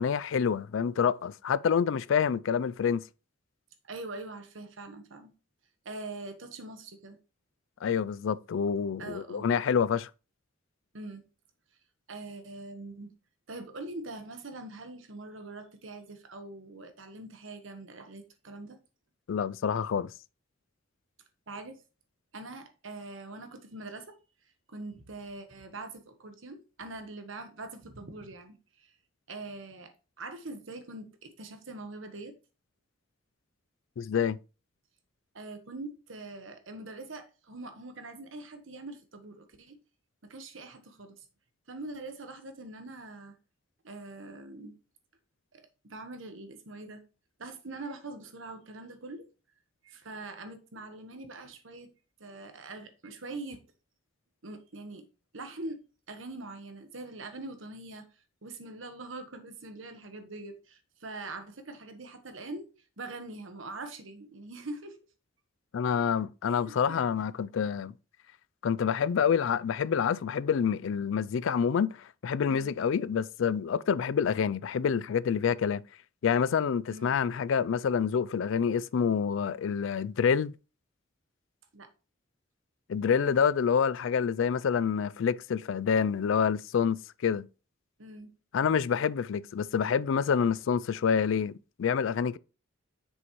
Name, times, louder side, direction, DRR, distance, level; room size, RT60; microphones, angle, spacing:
voice 1, 0.0-3.0 7.8-10.1 19.3-20.1 34.0-34.4 65.7-67.9 68.6-75.8 76.2-80.5 82.9-87.5 88.5-92.4, left 7 dB, 70° left, 0.3 m, -27 dB
voice 2, 3.9-5.3 5.8-7.2 9.0-9.5 10.9-11.2 12.1-13.1 13.5-18.8 21.5-21.8 22.3-24.2 24.7-28.9 29.3-32.4 35.3-39.8 40.2-41.3 41.7-43.3 43.8-44.8 45.5-47.0 47.4-49.3 49.8-51.9 52.2-53.6 54.4-55.1 55.3-55.8 56.1-58.0 58.4-62.7 63.0-65.0 66.5-67.0 72.5-72.7 76.9-77.1 81.7-81.9 88.0-88.3, right 2 dB, 75° right, 1.3 m, -43 dB
7.8 x 6.2 x 3.1 m
head